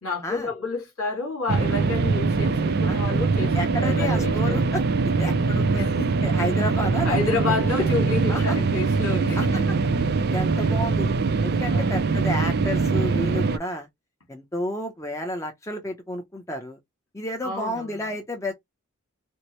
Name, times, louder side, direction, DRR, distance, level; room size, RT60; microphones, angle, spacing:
voice 1, 0.0-4.6 5.8-6.1 6.5-6.6 7.0-9.6 10.6-10.7 11.7-12.0 17.4-18.0, left 3 dB, 75° left, 2.3 m, -30 dB
sound 1, 1.5-13.6, right 4 dB, 45° right, 0.3 m, -22 dB
voice 2, 2.9-3.2 3.5-4.8 5.2-5.9 6.2-7.4 8.3-8.6 9.4-9.6 10.3-11.1 11.4-13.9 14.3-16.8 17.1-18.5, equal, 15° left, 0.6 m, -31 dB
4.3 x 2.0 x 3.0 m
head